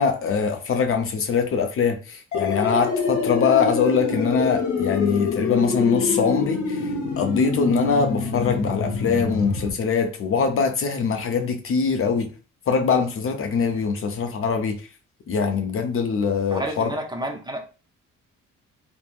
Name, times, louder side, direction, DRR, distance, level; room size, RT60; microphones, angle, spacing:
voice 1, 0.0-6.9 7.2-12.3 12.7-14.8 15.3-16.9, left 5 dB, 45° left, 0.5 m, -23 dB
sound 1, 2.3-9.7, left 5 dB, 70° left, 0.9 m, -26 dB
voice 2, 16.5-17.6, right 1 dB, 15° right, 0.5 m, -30 dB
3.5 x 2.1 x 2.3 m
cardioid pair, 90°, 30 cm